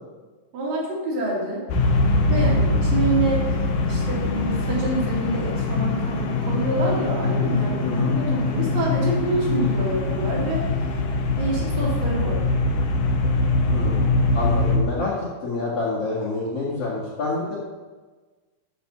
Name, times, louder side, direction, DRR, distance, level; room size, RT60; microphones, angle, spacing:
voice 1, 0.5-1.6 2.3-3.4 3.8-10.6 11.3-12.4, right 2 dB, 65° right, -5 dB, 4.7 m, -27 dB
sound 1, 1.7-14.8, left 2 dB, 65° left, 2.3 m, -22 dB
voice 2, 7.8-8.2 13.7-17.6, left 3 dB, 45° left, -6 dB, 2.5 m, -28 dB
12.5 x 6.0 x 5.9 m, 1.3 s
omnidirectional pair, 4.4 m